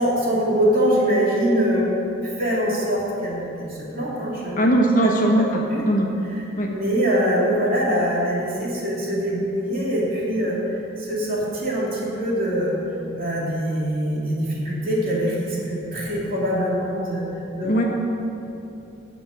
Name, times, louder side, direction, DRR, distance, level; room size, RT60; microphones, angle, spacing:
voice 1, 0.0-1.9 2.2-4.6 5.0-5.1 5.5-5.8 6.3-10.6 11.0-12.8 13.1-17.3 17.5-17.8, equal, 50° right, -5 dB, 2.9 m, -23 dB
voice 2, 4.6-6.1 6.6-6.7 17.6-17.8, right 1 dB, 45° left, 0 dB, 1.3 m, -19 dB
16.5 x 6.0 x 5.2 m, 2.8 s
head